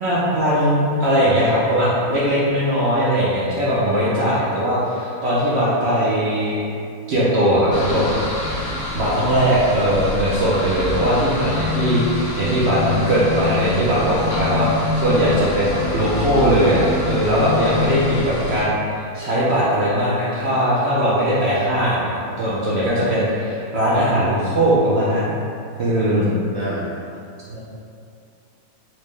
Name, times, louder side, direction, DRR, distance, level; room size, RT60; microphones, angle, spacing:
voice 1, 0.0-6.6 7.1-8.1 8.9-18.8 19.1-25.3 25.8-26.2 27.5-27.6, equal, 60° right, -8 dB, 0.7 m, -19 dB
voice 2, 3.7-4.1 12.7-13.1 13.9-14.1 26.0-26.9, equal, 30° left, -11 dB, 0.4 m, -28 dB
sound 1, 7.7-18.6, left 2 dB, 80° left, 1.2 m, -26 dB
4.3 x 2.1 x 3.1 m, 2.5 s
omnidirectional pair, 1.6 m